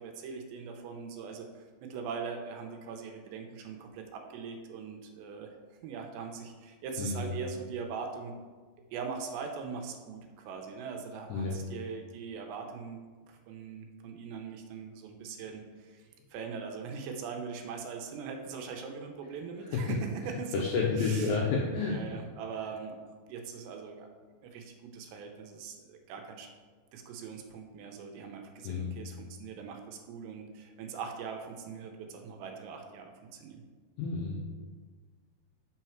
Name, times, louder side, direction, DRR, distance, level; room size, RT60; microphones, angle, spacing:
voice 1, 0.0-5.5 5.8-8.3 8.9-20.7 21.0-21.4 21.9-23.0 23.3-24.1 24.4-26.5 26.9-33.6, right 5 dB, 80° right, 3 dB, 2.8 m, -41 dB
voice 2, 7.0-7.3 11.3-11.6 19.7-19.8 20.5-22.0 28.6-28.9 34.0-34.4, left 4 dB, 85° left, -3 dB, 2.1 m, -30 dB
6.3 x 5.9 x 4.4 m, 1.5 s
omnidirectional pair, 5.2 m